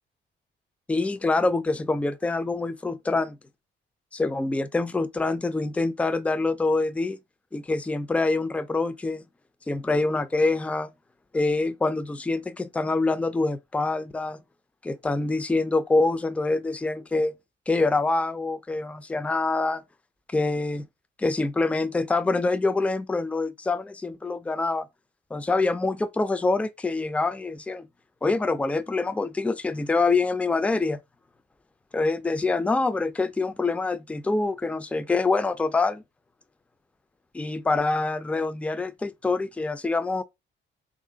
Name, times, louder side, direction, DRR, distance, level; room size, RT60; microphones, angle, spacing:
voice 1, 0.9-3.4 4.1-7.2 7.5-9.2 9.7-10.9 11.3-14.4 14.8-17.3 17.7-19.8 20.3-20.9 21.2-24.9 25.3-27.9 28.2-31.0 31.9-36.0 37.3-40.2, left 3 dB, 5° left, 0.3 m, -25 dB
3.2 x 2.5 x 3.7 m
cardioid pair, 90°, 20 cm